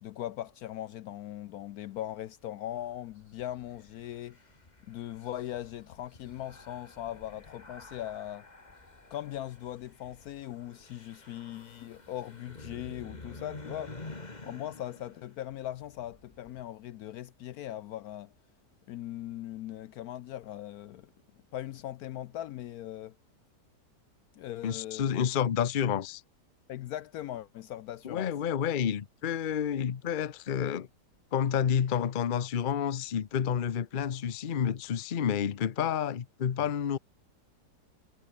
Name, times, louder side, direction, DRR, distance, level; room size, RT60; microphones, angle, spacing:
voice 1, 0.0-4.4 4.9-8.5 9.1-14.0 14.4-18.3 18.9-21.1 21.5-23.2 24.3-25.3 26.7-28.3, left 12 dB, 70° left, 1.0 m, -40 dB
sound 1, 2.8-16.6, left 2 dB, 25° left, 2.4 m, -50 dB
voice 2, 24.6-26.2 28.0-30.9 31.3-37.0, left 8 dB, 45° left, 0.7 m, -29 dB
omnidirectional pair, 1.8 m